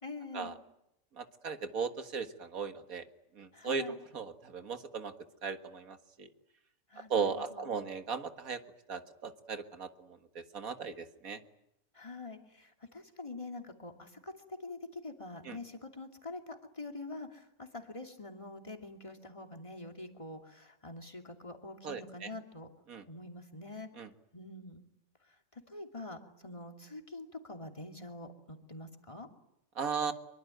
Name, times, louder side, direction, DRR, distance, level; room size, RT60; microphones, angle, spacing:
voice 1, 0.0-0.5 3.5-3.9 6.9-7.7 11.9-22.7 23.1-23.9 24.3-24.8 25.5-29.3, left 2 dB, 20° left, 4 dB, 2.7 m, -45 dB
voice 2, 1.2-3.0 3.4-3.8 4.1-5.1 5.4-6.3 7.1-8.6 8.9-11.4 15.4-15.6 21.8-22.3 22.9-23.0 24.0-24.1 29.8-30.1, right 6 dB, 75° right, 8 dB, 2.1 m, -37 dB
25.0 x 23.5 x 9.2 m, 0.83 s
omnidirectional pair, 1.5 m